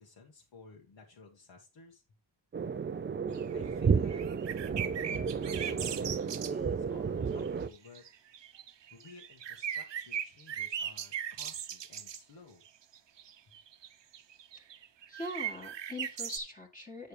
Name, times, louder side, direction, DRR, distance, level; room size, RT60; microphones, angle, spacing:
voice 1, 0.0-2.0 3.5-4.3 4.8-12.6, left 4 dB, 75° left, -1 dB, 1.7 m, -56 dB
sound 1, 2.5-7.7, right 6 dB, 30° right, 0.3 m, -32 dB
sound 2, 3.3-3.7 4.1-6.5 7.4-7.5 7.7-12.2 12.9-16.4, right 9 dB, 70° right, 0.9 m, -39 dB
voice 2, 15.1-17.1, left 1 dB, 20° left, -1 dB, 1.7 m, -42 dB
9.3 x 6.7 x 3.2 m, 0.26 s
wide cardioid pair, 135°, 45 cm